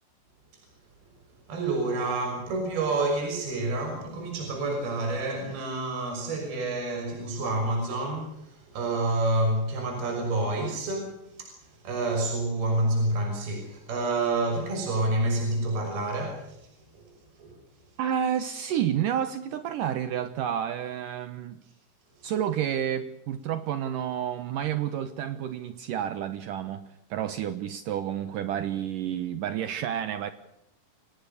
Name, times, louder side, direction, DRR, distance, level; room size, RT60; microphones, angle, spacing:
voice 1, 1.5-16.7 16.9-17.1 17.4-17.6, right 2 dB, 55° right, 3 dB, 7.8 m, -28 dB
voice 2, 18.0-21.6 22.2-30.3, right 9 dB, 75° right, 11 dB, 2.0 m, -30 dB
29.0 x 19.0 x 6.8 m, 0.80 s
omnidirectional pair, 5.4 m